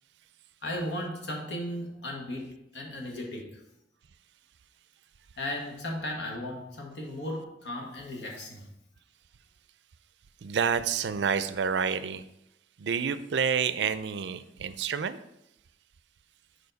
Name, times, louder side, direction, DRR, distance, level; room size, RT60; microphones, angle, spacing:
voice 1, 0.6-3.5 5.4-8.7, left 1 dB, 85° left, 1 dB, 1.5 m, -36 dB
voice 2, 10.4-12.2 12.8-15.2, right 6 dB, 75° right, 13 dB, 0.4 m, -28 dB
6.9 x 4.8 x 4.0 m, 0.83 s
head